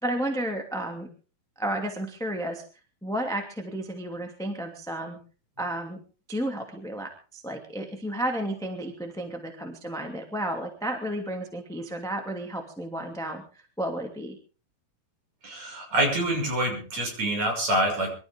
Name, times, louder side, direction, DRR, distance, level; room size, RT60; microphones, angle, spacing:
voice 1, 0.0-1.1 1.6-2.6 3.0-5.2 5.6-6.0 6.3-13.4 13.8-14.4, right 1 dB, ahead, 3 dB, 1.3 m, -32 dB
voice 2, 15.4-18.1, right 1 dB, 45° right, 1 dB, 7.2 m, -26 dB
24.5 x 13.0 x 3.7 m, 0.36 s
omnidirectional pair, 4.6 m